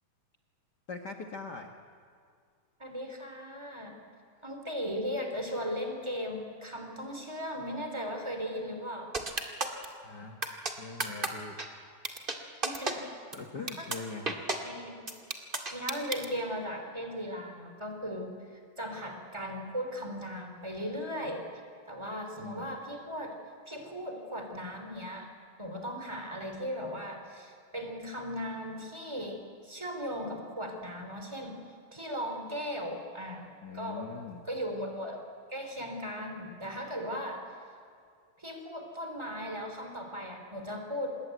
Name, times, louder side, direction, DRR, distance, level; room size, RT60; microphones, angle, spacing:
voice 1, 0.9-1.7 10.0-10.4 10.8-11.6 13.3-14.6 22.4-22.7 33.6-34.4, left 4 dB, 80° left, 4 dB, 0.9 m, -42 dB
voice 2, 2.8-4.0 4.4-9.2 12.6-13.1 13.8-13.9 14.6-15.1 15.7-18.3 18.8-21.5 21.9-23.4 23.6-25.3 25.6-31.6 31.9-34.1 34.4-35.2 35.5-37.4 38.4-41.2, equal, 10° right, 4 dB, 3.0 m, -37 dB
sound 1, 9.1-9.9 10.4-10.7 11.0-11.3 11.6-11.7 12.0-12.4 12.6-12.9 13.3-13.4 13.7-14.0 14.3-14.6 15.1-16.3, right 3 dB, 25° right, 1.3 m, -31 dB
26.0 x 21.0 x 9.2 m, 2.3 s
omnidirectional pair, 4.1 m